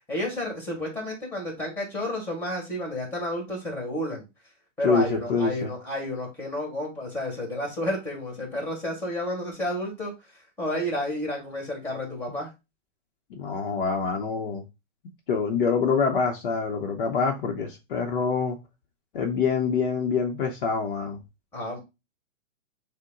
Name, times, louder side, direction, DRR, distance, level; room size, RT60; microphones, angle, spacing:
voice 1, 0.1-4.2 4.8-10.1 10.6-12.5 21.5-21.8, left 1 dB, 5° left, 1.5 m, -31 dB
voice 2, 4.8-5.7 13.3-14.6 15.3-18.6 19.1-21.2, left 5 dB, 45° left, 0.8 m, -25 dB
6.5 x 2.2 x 3.7 m
hypercardioid pair, 155°, 38 cm